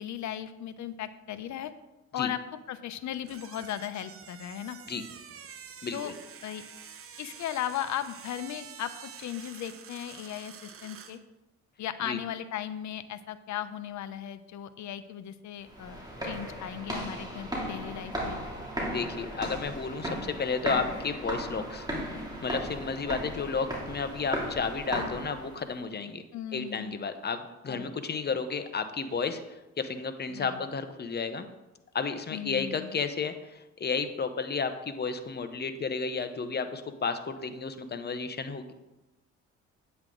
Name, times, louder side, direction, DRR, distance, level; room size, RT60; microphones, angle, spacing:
voice 1, 0.0-1.7 2.1-2.4 2.7-4.8 5.9-6.1 6.4-6.6 7.2-8.9 9.2-11.2 11.8-18.4 26.3-27.0 27.7-27.9 30.3-30.6 32.3-33.0, left 10 dB, 70° left, 11 dB, 0.8 m, -37 dB
sound 1, 3.2-11.2, right 7 dB, 45° right, 0.9 m, -48 dB
voice 2, 5.8-6.1 12.0-12.2 18.9-26.2 26.5-29.4 29.8-31.5 31.9-38.7, left 5 dB, 35° left, 9 dB, 1.0 m, -32 dB
sound 2, 15.6-25.7, equal, 15° right, 2.9 m, -36 dB
9.1 x 8.0 x 3.9 m, 0.99 s
cardioid pair, 90°, 30 cm